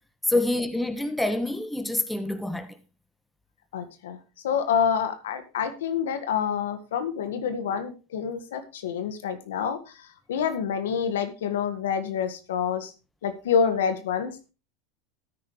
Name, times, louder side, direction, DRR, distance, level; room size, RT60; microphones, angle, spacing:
voice 1, 0.3-2.7, left 1 dB, 5° left, 1.4 m, -26 dB
voice 2, 3.7-4.2 4.4-9.8 10.3-12.9 13.2-14.5, left 7 dB, 85° left, 1.8 m, -27 dB
13.5 x 9.5 x 3.2 m
supercardioid pair, 110°, 0 cm